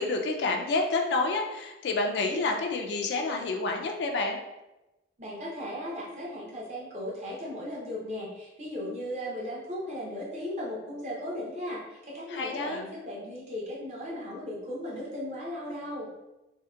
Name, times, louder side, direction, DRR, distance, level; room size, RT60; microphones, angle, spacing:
voice 1, 0.0-4.4 12.3-12.8, left 3 dB, 75° left, 3 dB, 0.3 m, -29 dB
voice 2, 5.2-16.1, left 1 dB, 40° right, -5 dB, 0.6 m, -36 dB
2.7 x 2.1 x 2.2 m, 0.99 s
head